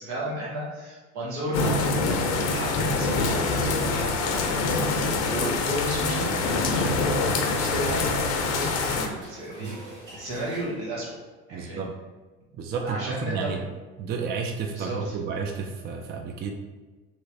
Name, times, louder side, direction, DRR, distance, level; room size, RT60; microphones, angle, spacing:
voice 1, 0.0-1.8 2.0-11.1 11.5-11.9 12.8-13.6 14.7-15.1, right 1 dB, 80° right, -6 dB, 1.4 m, -34 dB
sound 1, 1.5-9.1, left 3 dB, 50° left, 0.6 m, -25 dB
sound 2, 7.3-11.2, equal, 60° right, 1.5 m, -45 dB
voice 2, 11.5-11.9 12.5-13.6 14.0-16.5, right 5 dB, 30° right, 3 dB, 0.4 m, -31 dB
3.2 x 3.0 x 2.7 m, 1.3 s
hypercardioid pair, 75°, 33 cm